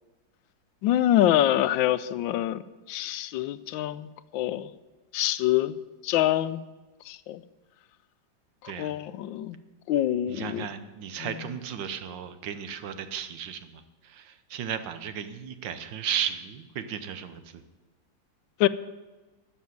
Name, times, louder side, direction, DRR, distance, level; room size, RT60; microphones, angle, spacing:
voice 1, 0.8-2.6 2.9-4.1 4.3-4.7 5.1-5.7 6.0-6.6 7.1-7.4 8.8-9.6 9.9-10.7 11.2-11.4 18.6-18.7, left 13 dB, 80° left, 1.3 m, -25 dB
voice 2, 10.3-13.6 14.5-17.4, right 8 dB, 75° right, 1.6 m, -34 dB
13.0 x 7.2 x 9.3 m
omnidirectional pair, 2.1 m